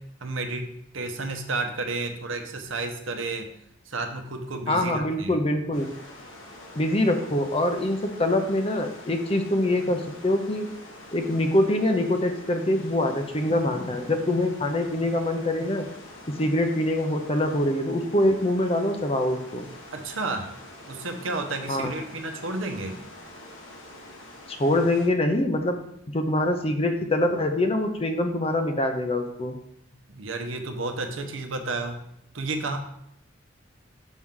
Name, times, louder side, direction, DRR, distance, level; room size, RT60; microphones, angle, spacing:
voice 1, 0.0-3.5 3.9-5.4 19.9-20.5 20.9-23.0 30.1-32.0 32.3-32.8, right 3 dB, 75° right, 5 dB, 0.9 m, -31 dB
voice 2, 4.7-5.9 6.7-10.7 11.1-15.9 16.4-19.7 21.7-21.9 24.5-25.8 26.1-29.6, left 1 dB, 30° left, 6 dB, 0.6 m, -24 dB
sound 1, 5.7-25.1, left 1 dB, 80° left, 1.4 m, -46 dB
6.3 x 5.7 x 3.7 m, 0.75 s
head